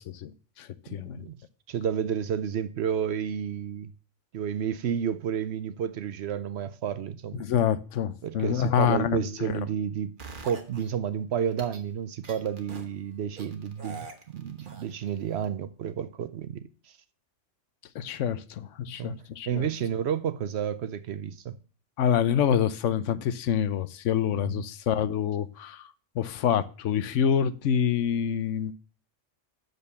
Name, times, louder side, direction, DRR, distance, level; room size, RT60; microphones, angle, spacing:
voice 1, 0.0-1.3 7.3-9.6 17.9-19.7 22.0-28.7, left 8 dB, 80° left, 1.0 m, -27 dB
voice 2, 0.9-1.4 1.7-3.9 4.3-7.5 8.2-10.2 10.4-17.0 18.8-19.2 19.5-21.6 24.5-24.7, right 8 dB, 65° right, 0.8 m, -31 dB
sound 1, 10.2-10.9 11.5-11.8 12.2-12.9 13.4-15.1 15.4-15.5, right 4 dB, 45° right, 1.2 m, -43 dB
6.5 x 5.3 x 6.9 m
omnidirectional pair, 1.3 m